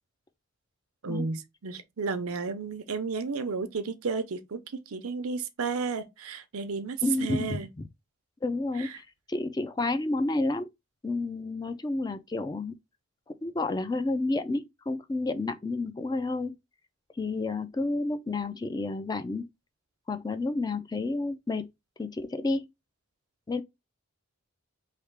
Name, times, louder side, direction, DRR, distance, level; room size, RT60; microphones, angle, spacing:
voice 1, 1.0-7.7 8.8-9.0, right 4 dB, 90° right, 0.7 m, -33 dB
voice 2, 7.0-7.6 8.4-10.7 11.0-12.8 13.4-16.5 17.2-19.5 20.1-21.7 22.0-22.7 23.5-23.6, left 2 dB, 20° left, 0.3 m, -30 dB
3.3 x 2.8 x 4.6 m
head